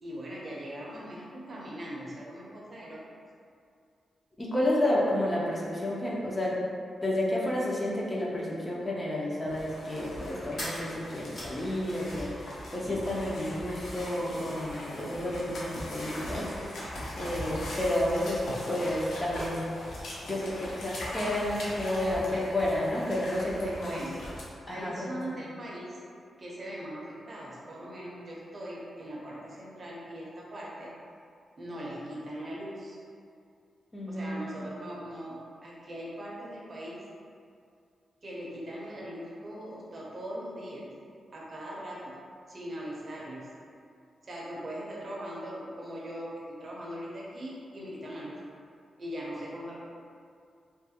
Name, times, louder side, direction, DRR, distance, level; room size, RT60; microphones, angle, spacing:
voice 1, 0.0-3.0 21.9-22.5 23.4-24.2 24.7-26.0 26.4-30.9 31.6-33.0 34.1-37.0 38.2-40.8 41.3-42.2 42.5-43.5 44.2-48.4 49.0-49.8, equal, 40° right, -5 dB, 0.5 m, -40 dB
voice 2, 4.4-6.6 7.0-16.7 17.2-18.4 18.7-19.7 20.3-24.0 24.7-25.1 33.9-34.4, left 1 dB, 20° left, -5 dB, 0.4 m, -31 dB
sound 1, 9.4-24.4, left 1 dB, 85° left, 0.5 m, -40 dB
sound 2, 10.5-12.4 12.7-13.6, left 1 dB, 55° left, 1.0 m, -42 dB
2.3 x 2.1 x 2.7 m, 2.3 s
wide cardioid pair, 125°, 0 cm